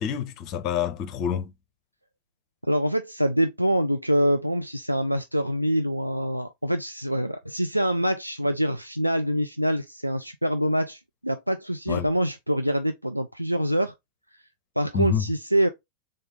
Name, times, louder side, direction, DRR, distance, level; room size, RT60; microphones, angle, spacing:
voice 1, 0.0-1.5 11.9-12.1 14.9-15.2, left 8 dB, 40° left, 0.7 m, -27 dB
voice 2, 2.6-13.9 14.8-15.7, equal, 90° right, 0.3 m, -25 dB
3.8 x 3.4 x 3.8 m
figure-of-eight pair, 90°, 0 cm